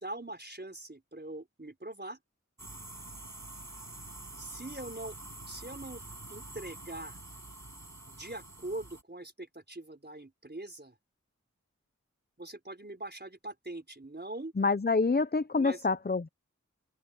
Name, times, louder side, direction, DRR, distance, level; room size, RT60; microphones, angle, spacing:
voice 1, 0.0-2.2 4.4-5.2 5.5-6.0 6.3-7.2 8.1-11.0 12.4-14.5 15.6-15.9, right 2 dB, 35° right, 4.4 m, -42 dB
sound 1, 2.6-9.0, right 2 dB, 65° right, 5.8 m, -47 dB
voice 2, 14.6-16.3, left 4 dB, 35° left, 0.7 m, -27 dB
open air
wide cardioid pair, 55°, 30 cm